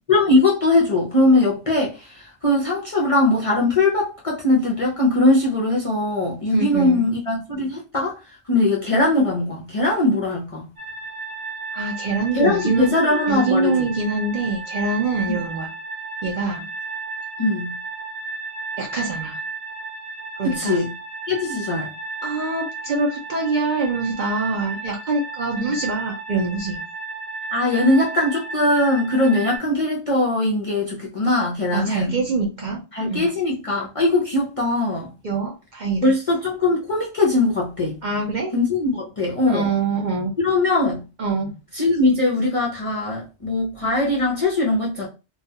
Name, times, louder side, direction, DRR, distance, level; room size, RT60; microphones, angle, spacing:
voice 1, 0.1-8.1 8.5-10.7 12.3-13.9 15.3-15.4 17.4-17.7 20.4-20.9 21.3-21.9 25.6-25.7 27.5-32.2 32.9-35.1 36.0-37.9 38.5-39.7 40.4-41.0 41.7-45.1, left 2 dB, 40° left, 0.5 m, -20 dB
voice 2, 6.5-7.1 11.7-12.9 13.3-15.7 16.2-16.7 18.8-19.4 20.4-20.8 22.2-26.8 31.7-32.8 33.1-33.3 35.2-36.1 38.0-38.5 39.5-40.3 41.2-41.5, right 3 dB, 55° right, 0.6 m, -24 dB
sound 1, 10.8-29.6, right 4 dB, 75° right, 1.2 m, -33 dB
2.3 x 2.2 x 2.7 m
omnidirectional pair, 1.2 m